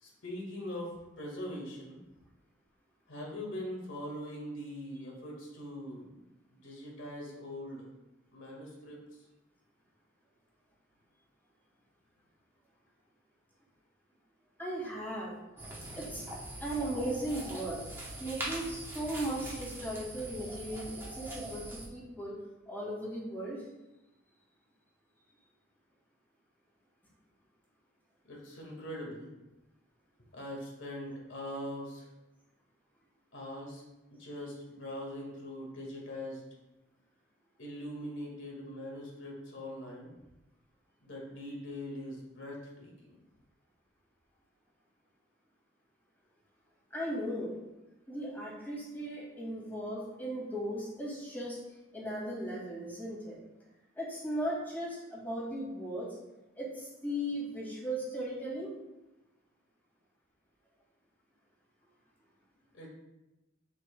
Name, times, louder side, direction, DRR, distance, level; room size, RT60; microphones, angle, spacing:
voice 1, 0.0-2.0 3.1-6.2 6.5-7.9 8.3-9.2 28.3-29.3 30.3-32.1 33.3-33.8 34.1-36.4 37.6-40.1 41.0-43.2 62.7-62.9, left 1 dB, 70° left, -1 dB, 1.8 m, -42 dB
voice 2, 14.6-15.3 16.0-16.2 16.6-17.8 18.2-22.4 22.7-23.7 46.9-47.5 48.1-51.6 51.9-53.4 54.0-56.2 56.6-58.7, right 1 dB, 10° left, -5 dB, 2.1 m, -37 dB
sound 1, 15.6-21.9, right 1 dB, 10° right, 1.1 m, -42 dB
7.6 x 6.0 x 2.2 m, 1.0 s
head